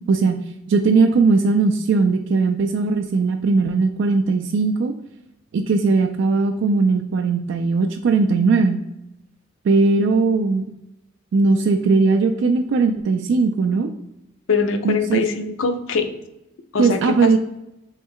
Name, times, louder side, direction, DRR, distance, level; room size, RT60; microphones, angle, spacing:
voice 1, 0.1-0.4 0.7-4.9 5.5-8.8 9.6-10.7 11.3-13.9 14.8-15.3 16.8-17.4, right 4 dB, 65° right, 5 dB, 0.3 m, -18 dB
voice 2, 14.5-16.1 16.7-17.3, left 4 dB, 75° left, 7 dB, 0.5 m, -22 dB
3.3 x 3.1 x 3.6 m, 0.88 s
head